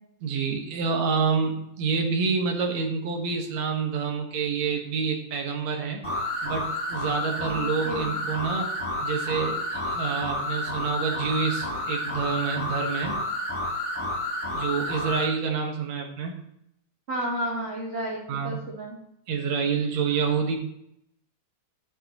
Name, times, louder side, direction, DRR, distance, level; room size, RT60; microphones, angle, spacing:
voice 1, 0.2-6.0 6.4-8.7 9.0-13.2 14.5-16.4 18.3-18.6 19.3-20.6, right 5 dB, 70° right, 2 dB, 2.7 m, -28 dB
sound 1, 6.0-15.3, left 1 dB, 10° left, 4.3 m, -30 dB
voice 2, 7.5-8.2 17.1-19.0, right 1 dB, 25° right, -4 dB, 1.5 m, -32 dB
13.5 x 7.7 x 3.1 m, 0.76 s
omnidirectional pair, 3.4 m